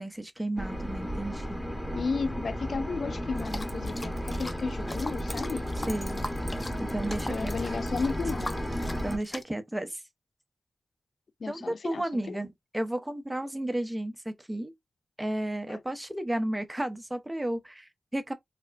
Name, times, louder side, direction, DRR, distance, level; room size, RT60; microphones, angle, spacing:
voice 1, 0.0-1.6 5.8-6.2 6.8-7.8 9.0-10.0 11.5-14.7 15.2-18.3, right 1 dB, 15° right, 0.8 m, -33 dB
sound 1, 0.6-9.2, equal, ahead, 1.1 m, -33 dB
voice 2, 1.9-5.6 7.3-8.5 11.4-12.4 15.7-15.8, left 4 dB, 65° left, 0.4 m, -33 dB
sound 2, 3.4-9.4, left 2 dB, 30° left, 0.6 m, -41 dB
4.1 x 2.2 x 2.5 m
cardioid pair, 40°, 0 cm